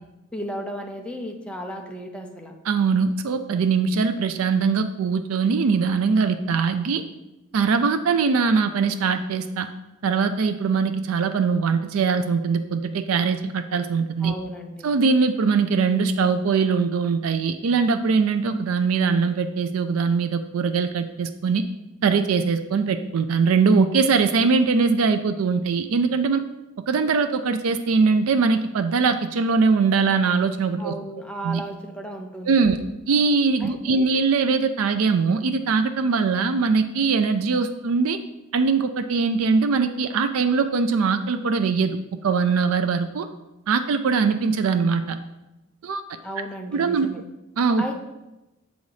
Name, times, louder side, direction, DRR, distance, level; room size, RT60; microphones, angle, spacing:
voice 1, 0.3-2.5 14.2-14.9 30.8-32.8 33.6-34.1 46.2-47.2 47.8-47.9, right 1 dB, 5° left, 2 dB, 0.7 m, -34 dB
voice 2, 2.7-7.0 7.5-9.7 10.0-14.3 14.8-21.6 22.0-26.4 26.9-30.9 31.4-31.6 32.5-32.8 33.1-38.2 38.5-43.3 43.7-45.2 45.8-46.0 46.7-47.1 47.6-47.8, right 5 dB, 85° right, 9 dB, 0.4 m, -21 dB
7.0 x 4.1 x 4.8 m, 0.99 s
head